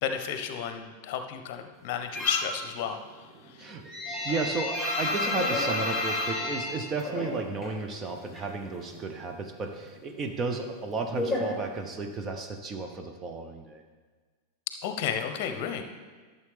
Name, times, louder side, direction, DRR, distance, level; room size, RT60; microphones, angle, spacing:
voice 1, 0.0-3.0 3.4-3.7 4.3-4.4 14.8-15.8, left 8 dB, 45° left, 7 dB, 0.8 m, -32 dB
sound 1, 2.1-2.6 2.9-7.8 8.1-9.1 9.4-12.2, left 2 dB, 5° right, 2.5 m, -31 dB
voice 2, 4.2-13.8, right 3 dB, 25° right, 4 dB, 0.8 m, -33 dB
12.5 x 6.8 x 3.4 m, 1.4 s
figure-of-eight pair, 90°, 0 cm